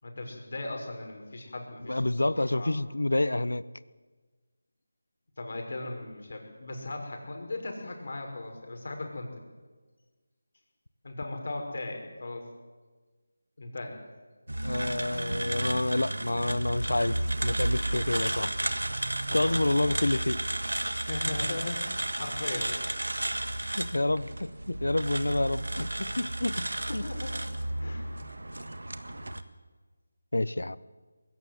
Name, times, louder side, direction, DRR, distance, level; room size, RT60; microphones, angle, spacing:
voice 1, 0.0-2.7 5.4-9.3 11.0-12.5 13.6-14.0 19.2-19.9 21.0-22.7 26.9-27.5 27.8-28.1, left 2 dB, 55° left, 3 dB, 5.9 m, -38 dB
voice 2, 1.9-3.6 14.6-17.2 17.4-18.5 19.3-20.4 23.8-27.1 30.3-30.8, left 1 dB, 90° left, 18 dB, 1.0 m, -28 dB
sound 1, 14.5-29.4, right 1 dB, 90° right, 1.7 m, -32 dB
21.5 x 16.0 x 9.5 m, 1.4 s
figure-of-eight pair, 165°, 0 cm